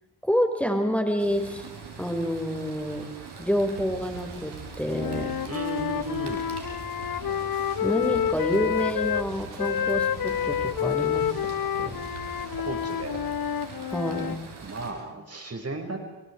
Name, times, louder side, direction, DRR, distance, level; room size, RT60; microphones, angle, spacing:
voice 1, 0.2-1.7 2.0-3.1 3.4-5.4 7.8-11.4 11.8-12.0 13.9-14.5, equal, 5° left, 5 dB, 5.2 m, -28 dB
sound 1, 1.2-14.9, right 5 dB, 65° right, 7.0 m, -43 dB
sound 2, 3.8-13.3, right 4 dB, 90° right, 5.2 m, -44 dB
Wind instrument woodwind instrument, 4.9-9.3 9.6-14.4, left 9 dB, 50° left, 1.1 m, -28 dB
voice 2, 5.5-6.5 12.6-13.2 14.6-16.0, right 2 dB, 35° right, 5 dB, 5.7 m, -35 dB
30.0 x 29.0 x 4.8 m, 1.1 s
hypercardioid pair, 40°, 44 cm